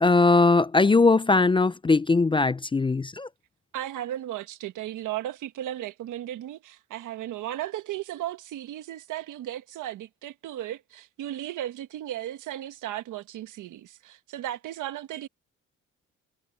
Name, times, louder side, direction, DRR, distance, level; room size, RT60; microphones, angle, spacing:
voice 1, 0.0-3.3, left 3 dB, 15° left, 0.4 m, -20 dB
voice 2, 3.7-15.3, right 13 dB, 80° right, 1.5 m, -35 dB
cardioid pair, 90°, 30 cm